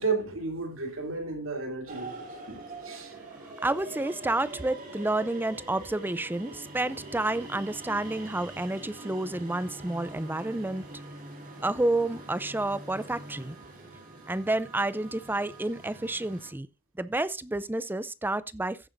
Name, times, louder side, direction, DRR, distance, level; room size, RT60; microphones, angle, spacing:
voice 1, 0.0-3.1, right 4 dB, 65° right, 3.0 m, -33 dB
sound 1, 1.9-16.5, right 2 dB, 45° right, 3.6 m, -44 dB
voice 2, 3.4-10.9 11.6-13.6 14.3-16.7 17.0-18.8, right 2 dB, 10° right, 0.5 m, -30 dB
15.0 x 9.0 x 2.6 m
head